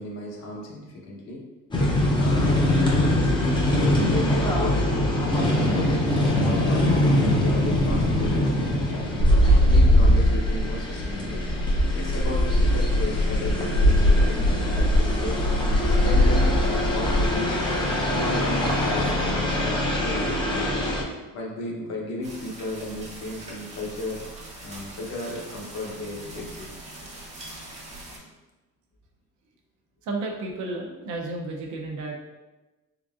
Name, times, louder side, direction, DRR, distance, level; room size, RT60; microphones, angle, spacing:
voice 1, 0.0-1.4 2.2-5.1 5.5-9.2 9.6-11.4 11.9-15.5 16.0-17.6 17.9-20.9 21.3-24.3 24.6-26.7, left 2 dB, 55° left, -1 dB, 0.8 m, -34 dB
sound 1, 1.7-21.0, left 1 dB, 15° left, 0.5 m, -24 dB
sound 2, 9.2-17.3, equal, 90° left, 1.3 m, -20 dB
sound 3, 22.2-28.2, right 2 dB, 20° right, 0.7 m, -42 dB
voice 2, 30.0-32.2, right 2 dB, 70° right, 0 dB, 0.6 m, -32 dB
3.8 x 3.5 x 2.4 m, 1.1 s
cardioid pair, 165°, 31 cm